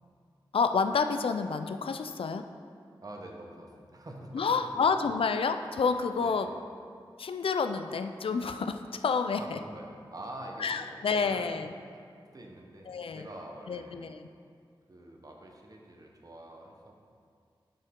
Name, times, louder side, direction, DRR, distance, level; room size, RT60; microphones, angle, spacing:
voice 1, 0.5-2.5 4.3-6.5 7.2-9.6 10.6-11.7 12.9-13.3 13.7-14.3, left 5 dB, 85° left, 8 dB, 0.4 m, -29 dB
voice 2, 3.0-4.8 6.2-6.5 9.4-10.9 11.1-11.4 12.3-14.0 14.9-17.0, right 1 dB, 45° right, 0 dB, 1.0 m, -45 dB
9.5 x 5.4 x 3.7 m, 2.2 s
wide cardioid pair, 95°, 9 cm